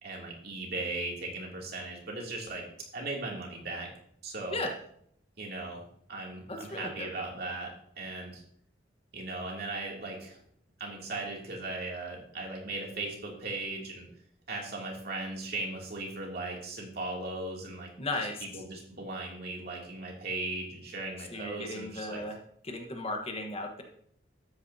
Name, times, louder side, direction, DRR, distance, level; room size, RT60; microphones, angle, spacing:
voice 1, 0.0-2.7 2.9-3.9 4.2-4.7 5.4-5.8 6.1-8.4 9.1-10.4 10.8-14.1 14.5-17.9 18.4-22.2, right 2 dB, 55° right, -1 dB, 2.8 m, -38 dB
voice 2, 6.5-7.1 18.0-18.4 21.3-22.4 22.6-23.8, left 2 dB, 30° left, 3 dB, 1.3 m, -35 dB
12.5 x 9.5 x 2.8 m, 0.67 s
head